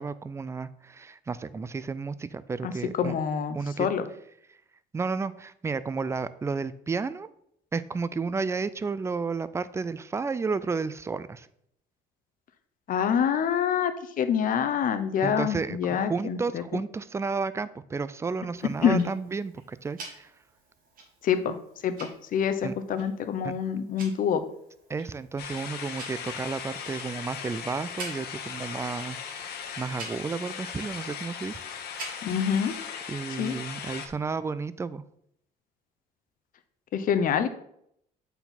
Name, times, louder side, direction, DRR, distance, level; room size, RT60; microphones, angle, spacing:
voice 1, 0.0-3.2 3.5-3.9 4.9-7.3 7.7-11.5 15.2-20.3 22.6-22.7 23.4-23.6 24.9-31.6 33.1-35.0, right 4 dB, 15° right, 16 dB, 0.4 m, -32 dB
voice 2, 3.0-4.0 12.9-16.8 18.8-19.0 21.2-21.5 21.8-24.4 32.2-32.7 33.4-33.5 36.9-37.5, left 8 dB, 55° left, 10 dB, 0.8 m, -26 dB
Tick-tock, 18.6-32.6, right 3 dB, 55° right, 2.1 m, -48 dB
sound 1, 25.4-34.1, left 7 dB, 75° left, 1.1 m, -38 dB
8.0 x 4.3 x 4.1 m, 0.71 s
cardioid pair, 110°, 17 cm